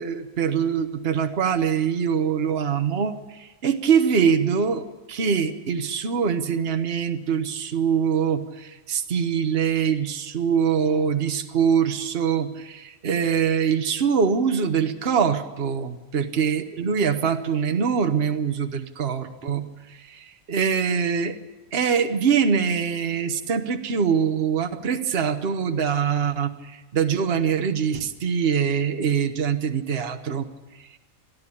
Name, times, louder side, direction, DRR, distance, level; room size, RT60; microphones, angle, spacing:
voice 1, 0.0-21.4 21.7-30.5, right 7 dB, 50° right, 7 dB, 1.3 m, -23 dB
27.5 x 10.5 x 9.9 m, 1.1 s
omnidirectional pair, 1.4 m